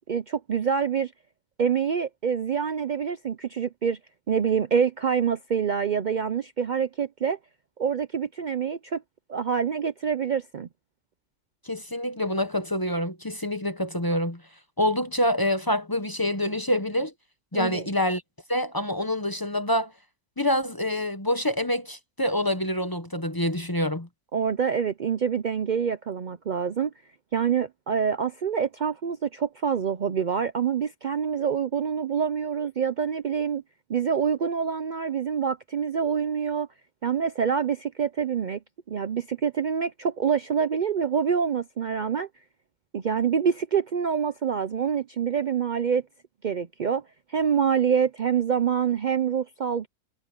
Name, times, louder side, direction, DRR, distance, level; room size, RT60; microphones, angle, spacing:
voice 1, 0.1-1.1 1.6-4.0 4.3-7.4 7.8-9.0 9.3-10.7 17.5-17.8 24.3-26.9 27.3-33.6 33.9-36.7 37.0-38.6 38.9-42.3 42.9-46.0 46.4-47.0 47.3-49.9, right 7 dB, 80° right, 0.4 m, -26 dB
voice 2, 11.6-14.4 14.8-17.1 17.5-18.2 18.5-19.9 20.4-24.1, left 1 dB, 20° left, 0.7 m, -26 dB
omnidirectional pair, 1.6 m